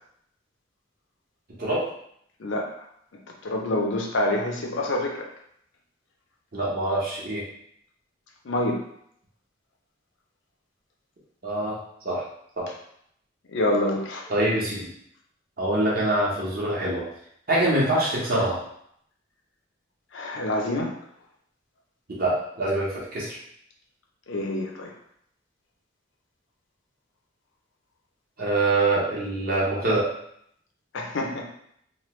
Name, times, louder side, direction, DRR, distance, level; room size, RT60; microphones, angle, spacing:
voice 1, 2.4-2.7 3.4-5.3 8.5-8.8 13.5-14.3 20.1-20.9 24.3-24.9 30.9-31.4, left 1 dB, 65° left, 1 dB, 0.5 m, -26 dB
voice 2, 6.5-7.4 11.4-11.8 12.0-12.2 12.6-12.7 14.3-14.9 15.6-17.0 17.5-18.6 22.2-23.4 28.4-30.1, right 2 dB, 45° right, -6 dB, 1.0 m, -24 dB
3.1 x 2.2 x 3.1 m, 0.70 s
head